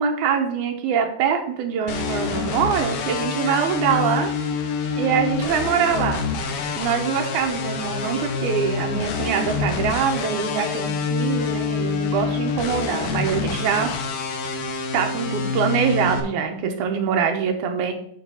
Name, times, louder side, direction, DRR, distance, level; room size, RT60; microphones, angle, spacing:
voice 1, 0.0-4.3 5.0-6.3 6.8-13.9 14.9-17.9, right 7 dB, 90° right, 4 dB, 2.3 m, -24 dB
sound 1, 1.9-16.2, left 5 dB, 70° left, 1.4 m, -26 dB
7.1 x 3.3 x 6.2 m, 0.68 s
omnidirectional pair, 3.4 m